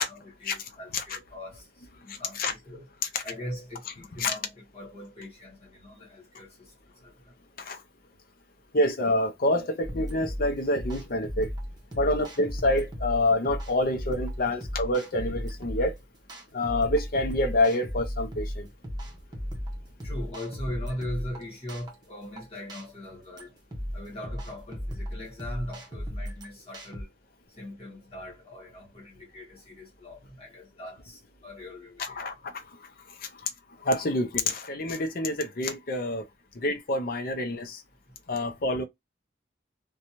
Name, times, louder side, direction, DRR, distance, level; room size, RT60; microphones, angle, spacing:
voice 1, 0.0-1.6 2.0-2.9 3.2-6.5 7.0-7.1 20.0-23.5 23.9-27.1 27.6-32.2, left 1 dB, 35° left, 1.5 m, -40 dB
voice 2, 2.1-2.5 4.2-4.3 7.6-7.8 8.7-11.5 11.9-16.0 16.5-18.7 32.0-32.6 33.2-33.5 33.8-36.3 36.5-37.8 38.3-38.8, left 1 dB, 50° left, 0.6 m, -27 dB
sound 1, 9.8-27.0, equal, 25° right, 0.8 m, -36 dB
2.7 x 2.2 x 2.9 m
head